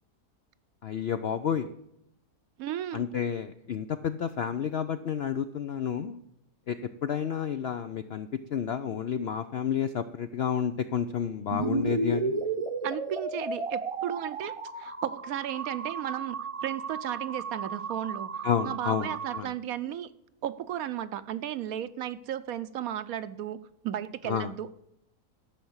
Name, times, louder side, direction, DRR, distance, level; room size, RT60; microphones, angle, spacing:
voice 1, 0.8-1.7 2.9-6.2 6.7-12.3 18.4-19.5 24.2-24.5, left 8 dB, 70° left, 10 dB, 0.6 m, -30 dB
voice 2, 2.6-3.1 12.8-16.4 16.6-18.3 18.6-20.1 20.4-23.6 23.8-24.7, right 11 dB, 70° right, 14 dB, 1.0 m, -34 dB
sound 1, 11.5-19.4, right 3 dB, 30° right, 0.6 m, -33 dB
13.5 x 5.8 x 7.9 m, 0.80 s
omnidirectional pair, 1.7 m